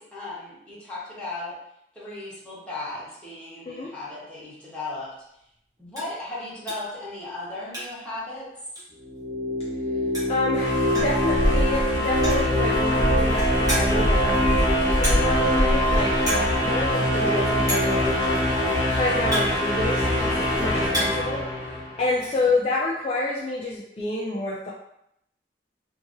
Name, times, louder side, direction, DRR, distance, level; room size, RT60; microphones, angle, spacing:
voice 1, 0.1-1.5 1.9-5.1 5.8-8.5, left 2 dB, 5° left, -10 dB, 1.1 m, -36 dB
sound 1, 5.0-5.1 5.5-5.6 5.9-6.2 6.7-7.0 7.3-8.1 8.4-8.5 8.8-8.9 9.9-10.0 10.1-10.5 10.9-11.2 12.1-12.6 13.1-13.2 13.7-14.1 15.0-15.4 15.7-15.9 16.2-16.5 16.8-16.9 17.7-18.0 18.8-20.1 20.5-21.3 21.6-22.3, right 1 dB, 20° right, 1.1 m, -30 dB
sound 2, 9.0-22.1, equal, 55° left, 1.1 m, -24 dB
voice 2, 10.3-18.6 18.9-21.4 22.0-24.7, left 2 dB, 35° left, -5 dB, 0.3 m, -29 dB
sound 3, 10.5-20.9, equal, 75° right, 1.2 m, -29 dB
2.7 x 2.7 x 2.6 m, 0.78 s
head